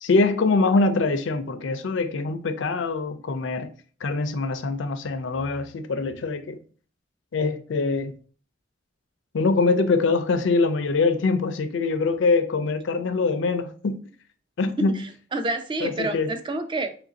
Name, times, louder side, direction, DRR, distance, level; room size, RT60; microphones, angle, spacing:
voice 1, 0.0-3.7 4.0-6.6 7.3-8.1 9.3-14.0 14.6-15.0 15.8-16.4, left 3 dB, 80° left, 0.5 m, -23 dB
voice 2, 14.8-17.0, right 2 dB, 25° right, 0.4 m, -29 dB
3.0 x 2.6 x 3.9 m
head